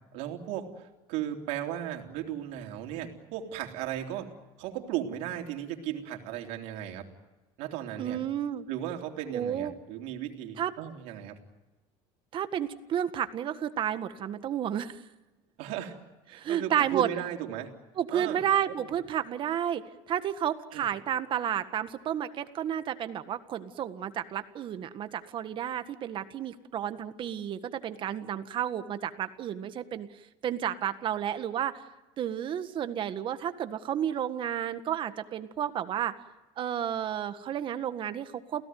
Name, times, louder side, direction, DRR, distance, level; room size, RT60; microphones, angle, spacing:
voice 1, 0.1-7.1 7.6-8.2 8.7-11.4 15.6-16.0 16.3-17.7 18.1-18.4 18.7-18.9 20.7-20.9, right 11 dB, 75° right, 3 dB, 3.6 m, -36 dB
voice 2, 8.0-8.7 9.3-9.8 10.6-10.7 12.3-15.0 16.3-17.1 18.0-19.8 20.1-30.1 30.4-31.7 32.2-36.1 36.6-38.6, right 10 dB, 40° right, 10 dB, 1.7 m, -31 dB
29.0 x 17.0 x 9.4 m, 1.1 s
cardioid pair, 135°, 12 cm